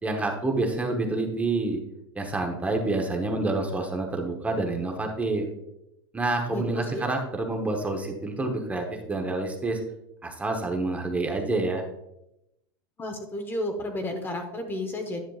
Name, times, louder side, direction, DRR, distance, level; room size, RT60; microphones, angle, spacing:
voice 1, 0.0-1.8 2.1-5.5 6.1-9.8 10.2-11.8, right 2 dB, 10° right, 2 dB, 0.9 m, -28 dB
voice 2, 6.5-7.1 13.0-15.2, left 1 dB, 15° left, 5 dB, 0.9 m, -32 dB
10.5 x 7.0 x 2.4 m, 0.86 s
supercardioid pair, 140°, 13 cm